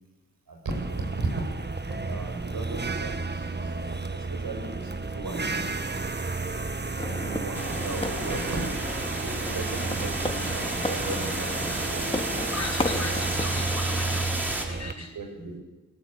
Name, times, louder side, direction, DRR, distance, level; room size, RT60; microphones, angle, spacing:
voice 1, 0.5-1.4 2.1-5.8 7.0-8.6 9.2-12.0 12.9-13.6 15.0-15.6, right 3 dB, 85° right, 2 dB, 6.9 m, -36 dB
sound 1, 0.7-14.9, right 3 dB, 30° right, 1.5 m, -32 dB
sound 2, 7.0-14.4, left 1 dB, 15° left, 2.3 m, -35 dB
sound 3, 7.5-14.6, right 1 dB, 5° right, 6.2 m, -33 dB
voice 2, 12.5-15.2, left 3 dB, 55° left, 3 dB, 4.3 m, -38 dB
28.5 x 17.0 x 8.8 m, 1.2 s
cardioid pair, 50°, 33 cm